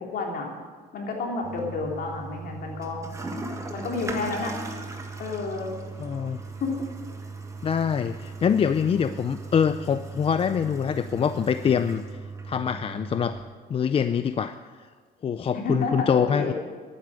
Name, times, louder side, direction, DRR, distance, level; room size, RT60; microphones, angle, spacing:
voice 1, 0.1-0.5 0.9-3.0 3.7-4.5 5.2-5.7 6.6-6.7 15.5-16.5, left 3 dB, 60° left, 0 dB, 3.5 m, -30 dB
Toilet flush, 1.4-13.4, right 3 dB, 20° right, 1.7 m, -38 dB
voice 2, 6.0-6.4 7.6-12.2 12.5-13.3 13.7-14.5 15.2-16.5, left 7 dB, 35° left, 11 dB, 0.5 m, -24 dB
11.5 x 9.6 x 9.0 m, 1.5 s
cardioid pair, 110°, 17 cm